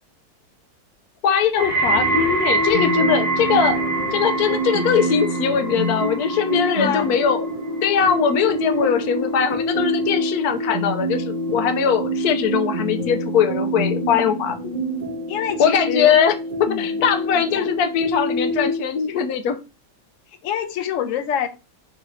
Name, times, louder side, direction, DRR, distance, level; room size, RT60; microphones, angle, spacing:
voice 1, 1.2-7.5 7.8-14.8 15.6-16.3 16.6-19.6, left 7 dB, 85° left, 1.1 m, -21 dB
sound 1, 1.5-12.7 13.0-13.5 14.2-14.3, right 3 dB, 65° right, 1.9 m, -28 dB
sound 2, 1.9-18.8, equal, 40° right, 0.7 m, -26 dB
voice 2, 6.6-7.1 15.3-16.2 16.7-16.8 17.3-17.7 20.4-21.5, left 9 dB, 65° left, 0.9 m, -26 dB
4.6 x 2.6 x 3.1 m
omnidirectional pair, 1.6 m